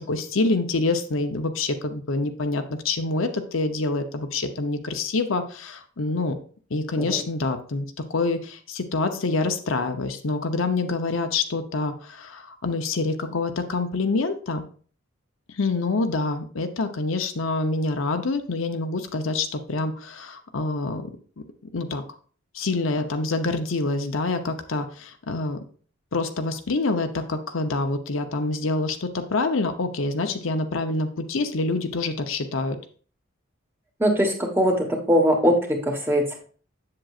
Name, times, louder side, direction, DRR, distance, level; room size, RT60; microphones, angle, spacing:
voice 1, 0.0-6.4 6.7-14.6 15.6-21.1 21.7-22.0 22.5-25.6 26.1-32.8, left 3 dB, 75° left, 7 dB, 0.8 m, -26 dB
voice 2, 34.0-36.4, equal, 10° right, 1 dB, 1.2 m, -21 dB
7.6 x 7.6 x 2.4 m, 0.42 s
head